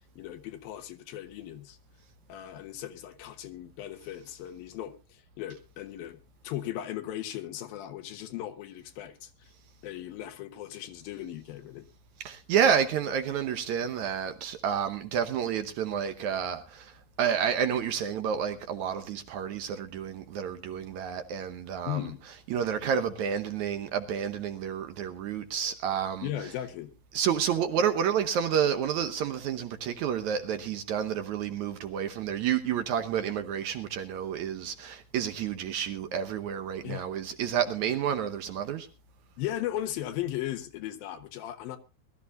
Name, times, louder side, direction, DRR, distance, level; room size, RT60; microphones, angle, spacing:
voice 1, 0.2-1.8 2.3-6.2 6.4-9.3 9.8-11.9 21.8-22.2 26.2-26.9 36.8-37.1 39.4-41.8, left 12 dB, 85° left, 3.0 m, -37 dB
voice 2, 12.2-16.9 17.2-22.0 22.5-26.3 27.1-38.9, right 8 dB, 70° right, 2.0 m, -30 dB
21.5 x 13.0 x 2.5 m
omnidirectional pair, 4.1 m